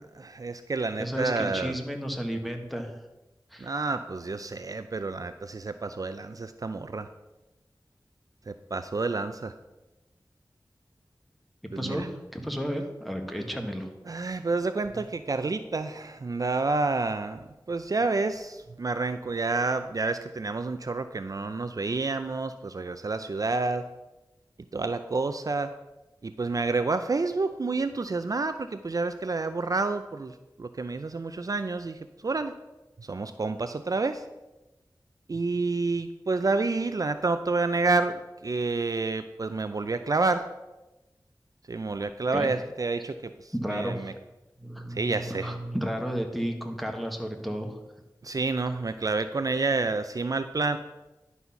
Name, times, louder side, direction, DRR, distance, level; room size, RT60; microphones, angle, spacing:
voice 1, 0.2-1.7 3.6-7.1 8.5-9.5 11.7-12.1 14.1-17.4 17.7-23.9 24.7-25.7 26.2-32.5 33.0-34.3 35.3-40.5 41.7-44.1 44.9-45.5 48.2-50.8, right 3 dB, 50° right, 10 dB, 0.4 m, -29 dB
voice 2, 1.0-3.0 3.5-3.7 11.6-13.9 42.3-42.5 43.5-44.1 44.6-47.8 48.7-48.8, equal, ahead, 3 dB, 1.4 m, -33 dB
11.0 x 4.1 x 5.7 m, 1.0 s
wide cardioid pair, 45°, 8 cm